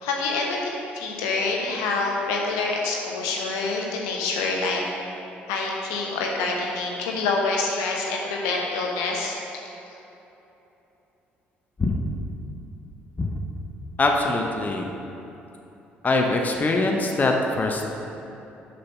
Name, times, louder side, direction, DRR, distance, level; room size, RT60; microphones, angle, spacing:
voice 1, 0.0-4.8 5.5-9.4, left 3 dB, 70° left, -1 dB, 1.0 m, -26 dB
voice 2, 14.0-14.9 16.0-17.9, left 2 dB, 30° left, 1 dB, 0.8 m, -23 dB
6.6 x 5.6 x 5.6 m, 3.0 s
figure-of-eight pair, 45°, 6 cm